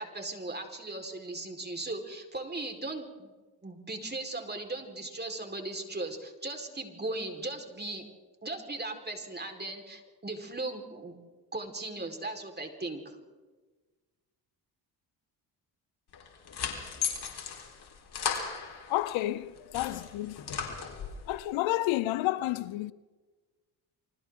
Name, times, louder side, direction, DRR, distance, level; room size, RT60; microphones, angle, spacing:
voice 1, 0.0-3.3 3.6-8.0 8.4-11.1 11.5-13.2, right 2 dB, 20° right, 4.6 m, -38 dB
sound 1, 16.1-19.2 19.6-21.3, left 7 dB, 60° left, 4.3 m, -36 dB
voice 2, 18.9-20.8 21.3-22.9, left 16 dB, 80° left, 0.8 m, -31 dB
29.0 x 24.5 x 3.8 m
supercardioid pair, 65°, 45 cm